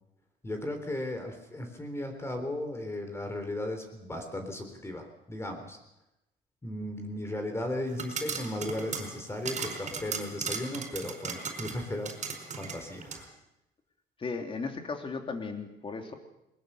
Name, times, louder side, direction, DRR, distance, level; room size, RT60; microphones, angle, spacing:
voice 1, 0.4-5.8 6.6-12.1 12.6-13.3, left 1 dB, 15° left, 5 dB, 3.7 m, -36 dB
sound 1, 7.9-13.2, right 5 dB, 45° right, 4.8 m, -37 dB
voice 2, 14.2-16.1, left 4 dB, 30° left, 5 dB, 3.3 m, -36 dB
21.0 x 20.5 x 6.9 m, 0.88 s
cardioid pair, 110°, 17 cm